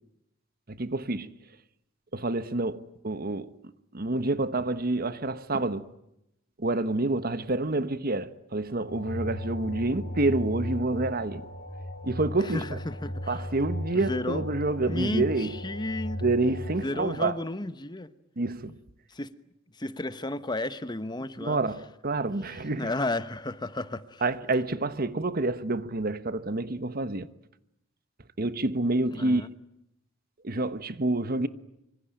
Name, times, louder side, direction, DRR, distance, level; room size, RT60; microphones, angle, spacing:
voice 1, 0.7-1.3 2.1-3.5 3.9-5.9 6.6-11.4 12.0-12.8 13.3-15.5 16.2-17.4 18.4-18.8 21.4-22.9 24.2-27.3 28.4-29.4 30.4-31.5, right 2 dB, 50° right, 1.2 m, -28 dB
sound 1, 8.9-16.8, equal, 45° left, 5.2 m, -36 dB
voice 2, 12.4-13.5 13.9-14.4 14.8-16.3 16.8-18.1 19.1-19.3 19.7-21.6 22.5-24.2 29.1-29.5, left 2 dB, 25° left, 1.1 m, -33 dB
25.5 x 25.0 x 9.0 m
head